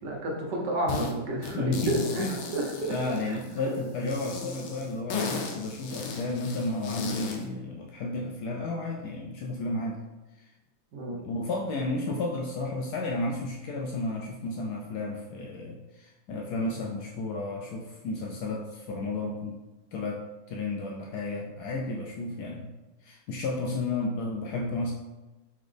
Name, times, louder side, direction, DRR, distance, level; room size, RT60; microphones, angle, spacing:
voice 1, 0.0-2.2 2.5-2.9 3.3-3.4 10.9-11.2, right 1 dB, 65° right, -1 dB, 1.4 m, -30 dB
sound 1, 0.9-1.1 1.4-3.6 4.1-7.4, left 4 dB, 90° left, 1.5 m, -35 dB
voice 2, 1.5-1.9 2.2-2.3 2.8-10.0 10.4-10.5 11.1-19.6 19.9-20.2 20.5-22.7 23.0-24.9, left 2 dB, 70° left, -1 dB, 1.0 m, -32 dB
4.0 x 4.0 x 3.3 m, 1.1 s
omnidirectional pair, 2.1 m